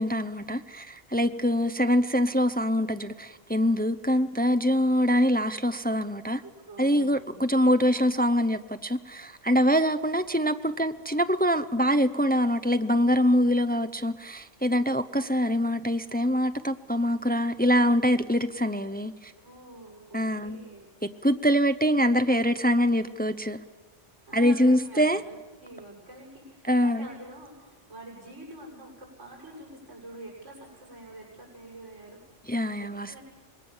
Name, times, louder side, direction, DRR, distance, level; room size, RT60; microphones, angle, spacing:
voice 1, 0.0-6.4 6.8-19.3 20.1-20.6 21.2-23.6 24.3-25.2 26.7-27.1 32.5-33.2, equal, 10° left, 0.5 m, -24 dB
voice 2, 6.4-7.3 19.4-20.9 24.3-32.2 32.8-33.2, right 1 dB, 85° right, 7.7 m, -46 dB
26.0 x 21.0 x 7.2 m
omnidirectional pair, 1.2 m